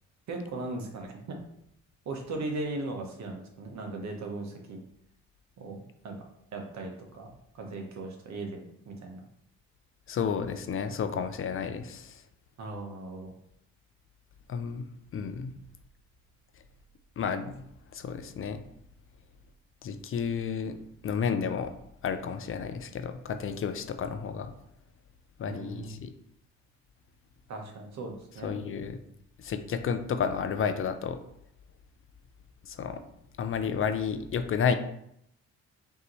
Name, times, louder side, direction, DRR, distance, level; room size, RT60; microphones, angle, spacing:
voice 1, 0.3-1.4 2.0-4.8 5.6-6.2 6.5-7.3 7.5-9.2 12.6-13.3 25.4-26.0 27.5-28.6, right 2 dB, 65° right, 2 dB, 1.1 m, -38 dB
voice 2, 10.1-12.2 14.5-14.9 15.1-15.5 17.2-17.7 17.9-18.6 19.8-20.8 21.0-21.7 22.0-24.5 25.4-26.1 28.4-29.0 29.4-31.2 32.6-33.0 33.4-34.7, left 6 dB, 45° left, 8 dB, 0.5 m, -31 dB
5.4 x 2.8 x 3.1 m, 0.73 s
cardioid pair, 90°, 30 cm